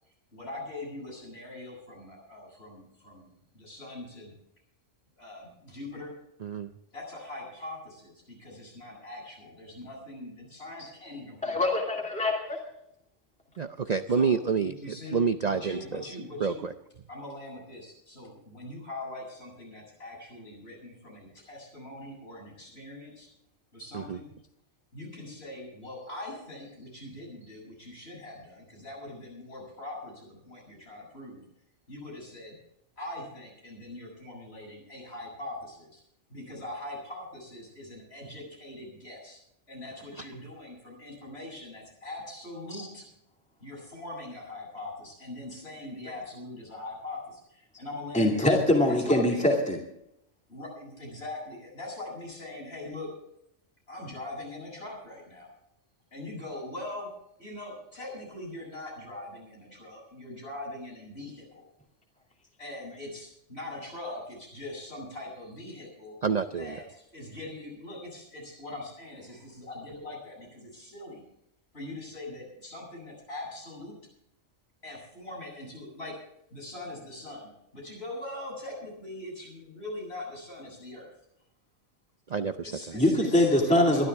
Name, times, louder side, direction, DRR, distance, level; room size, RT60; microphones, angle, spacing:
voice 1, 0.3-4.3 5.2-6.1 6.9-11.8 14.1-16.6 17.1-23.3 23.7-24.3 24.9-31.4 31.9-32.5 33.0-36.0 36.3-39.4 39.7-43.0 43.6-48.5 48.9-49.4 50.5-53.1 53.9-55.5 56.1-57.1 57.4-61.7 62.6-66.1 66.5-71.2 71.7-74.0 74.8-76.1 76.5-81.1 82.6-84.1, left 2 dB, 60° left, -2 dB, 8.2 m, -42 dB
voice 2, 6.4-6.7 13.6-16.1 16.4-16.7 23.9-24.2 40.2-40.3 66.2-66.8 82.3-82.7, right 5 dB, 45° right, 9 dB, 0.6 m, -28 dB
voice 3, 11.4-12.6 42.7-42.9 48.1-49.8 82.9-84.1, left 1 dB, 5° left, 0 dB, 2.6 m, -23 dB
22.5 x 13.0 x 3.6 m, 0.77 s
omnidirectional pair, 1.2 m